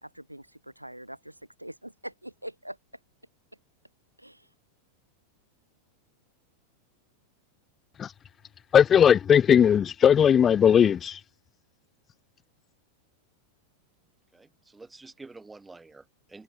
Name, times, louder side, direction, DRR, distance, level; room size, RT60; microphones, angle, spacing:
voice 1, 0.0-2.8 4.2-4.5, right 1 dB, 90° right, 2.5 m, -43 dB
voice 2, 8.7-11.2, left 8 dB, 25° left, 0.4 m, -18 dB
voice 3, 14.3-16.4, right 3 dB, 10° right, 3.5 m, -48 dB
figure-of-eight pair, 90°, 0 cm